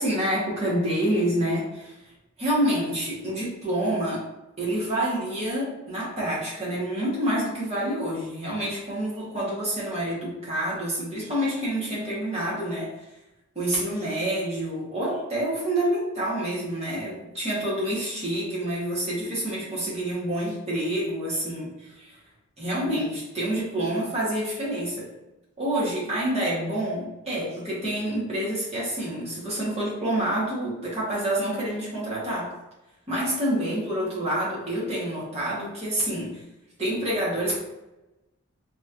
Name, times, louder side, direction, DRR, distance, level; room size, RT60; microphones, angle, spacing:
voice 1, 0.0-2.0 2.4-4.2 4.6-12.9 13.5-22.2 22.6-25.1 25.6-32.5 33.1-36.3 36.8-37.5, right 1 dB, 30° right, -7 dB, 1.2 m, -27 dB
4.0 x 2.9 x 2.5 m, 0.99 s
head